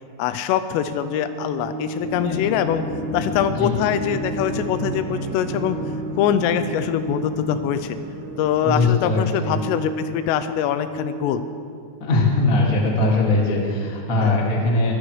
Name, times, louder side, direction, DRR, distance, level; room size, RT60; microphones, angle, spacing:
voice 1, 0.2-2.8 3.1-5.8 6.1-8.0 8.4-11.5 14.2-14.5, left 9 dB, 85° left, 11 dB, 3.1 m, -23 dB
Organ, 1.0-11.9, right 3 dB, 80° right, 3.1 m, -34 dB
sound 1, 2.0-9.5, equal, 35° left, 4.8 m, -33 dB
voice 2, 8.6-9.6 12.0-14.9, left 2 dB, 70° left, -3 dB, 0.8 m, -20 dB
22.0 x 15.0 x 3.2 m, 2.3 s
omnidirectional pair, 6.0 m